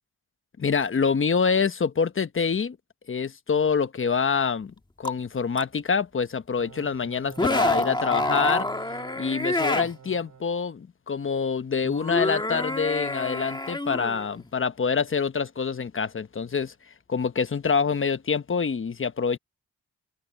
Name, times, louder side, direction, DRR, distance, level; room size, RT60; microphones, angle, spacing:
voice 1, 0.6-2.8 3.1-8.7 9.2-16.7 17.1-19.4, left 5 dB, 40° left, 1.1 m, -26 dB
sound 1, 5.0-5.1 5.6-5.7 7.3-9.9 11.8-14.5, left 1 dB, 15° left, 1.8 m, -27 dB
sound 2, 6.6-10.5, right 7 dB, 70° right, 5.4 m, -48 dB
open air
cardioid pair, 70°, 31 cm